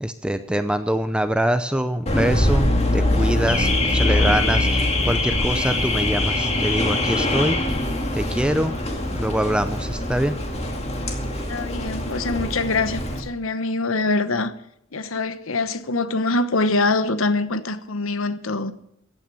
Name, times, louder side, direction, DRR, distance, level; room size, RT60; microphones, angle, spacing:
voice 1, 0.0-7.6 8.1-8.8 9.1-10.4, equal, 5° right, 10 dB, 0.6 m, -24 dB
Car / Alarm, 2.1-13.2, left 1 dB, 30° left, 2.3 m, -23 dB
voice 2, 11.5-14.5 14.9-18.7, left 3 dB, 80° left, 12 dB, 1.1 m, -24 dB
15.5 x 9.2 x 7.0 m, 0.76 s
head